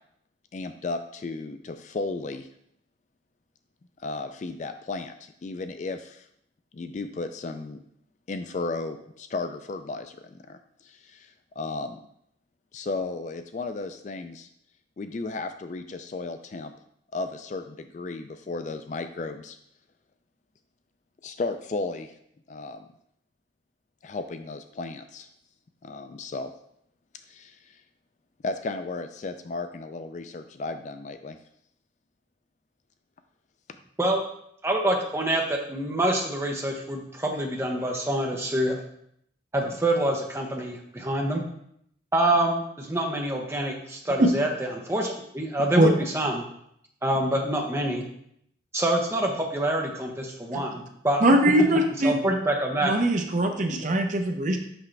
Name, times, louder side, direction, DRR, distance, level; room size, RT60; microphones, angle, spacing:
voice 1, 0.5-2.5 4.0-6.3 6.7-7.8 8.3-12.0 12.7-14.5 15.0-16.7 17.1-19.6 21.2-22.1 22.5-22.9 24.0-25.3 25.8-26.5 27.3-27.8 28.4-31.4, left 3 dB, 40° left, 8 dB, 0.3 m, -34 dB
voice 2, 34.6-38.8 39.5-41.4 42.1-46.5 47.0-48.0 48.7-51.2 52.0-52.9, right 1 dB, 15° right, 0 dB, 0.8 m, -26 dB
voice 3, 51.2-52.1 52.8-54.6, right 1 dB, 40° right, 5 dB, 0.6 m, -21 dB
6.0 x 5.5 x 3.3 m, 0.72 s
head